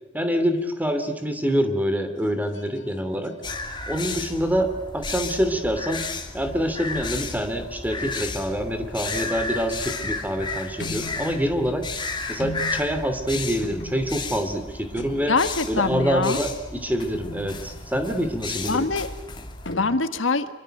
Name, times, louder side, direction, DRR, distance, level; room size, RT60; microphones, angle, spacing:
voice 1, 0.1-3.4 3.9-6.1 6.3-11.9 12.3-15.3 15.7-18.9, equal, 10° right, 8 dB, 2.9 m, -26 dB
sound 1, 1.4-1.8 2.2-3.7 4.1-4.4 6.0-6.1 6.8-7.5 8.1-8.5 8.8-20.0, left 1 dB, 70° left, 2.7 m, -42 dB
sound 2, 3.4-19.7, left 3 dB, 25° left, 3.0 m, -33 dB
voice 2, 15.3-16.4 18.7-19.1 19.7-20.5, left 3 dB, 90° left, 10 dB, 1.7 m, -23 dB
26.0 x 24.0 x 8.0 m, 1.1 s
head